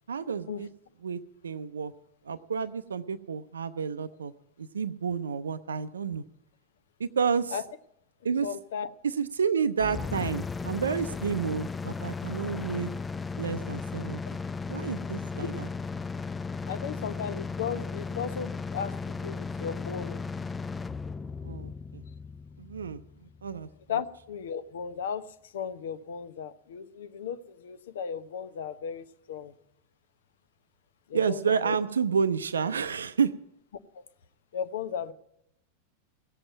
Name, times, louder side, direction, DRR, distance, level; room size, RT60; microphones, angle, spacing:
voice 1, 0.1-0.7 1.0-1.9 2.3-4.3 4.6-6.2 7.0-7.6 8.2-8.5 9.0-12.9 13.4-14.2 14.7-15.7 21.4-22.0 22.6-23.0 23.4-23.7 31.1-33.3, right 6 dB, 70° right, 11 dB, 0.5 m, -30 dB
voice 2, 8.4-8.9 16.7-20.2 23.9-29.6 31.1-31.8 33.9-34.0 34.5-35.1, left 7 dB, 60° left, 13 dB, 0.8 m, -36 dB
sound 1, 9.8-23.7, left 4 dB, 15° left, 0.4 m, -36 dB
16.5 x 7.8 x 7.6 m, 0.79 s
figure-of-eight pair, 90°, 0 cm